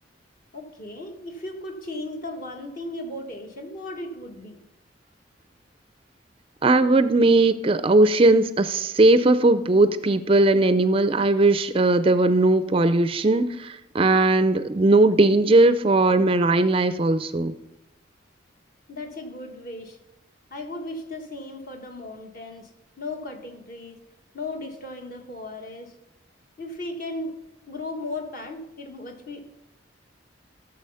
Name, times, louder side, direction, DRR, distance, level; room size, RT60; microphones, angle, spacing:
voice 1, 0.5-4.5 18.9-20.0 20.5-22.7 23.0-24.0 24.3-25.9 26.6-27.4 27.7-29.4, left 2 dB, 45° left, 3 dB, 1.7 m, -36 dB
voice 2, 6.6-17.5, right 2 dB, 30° right, 12 dB, 0.4 m, -19 dB
15.0 x 6.9 x 5.6 m, 0.91 s
head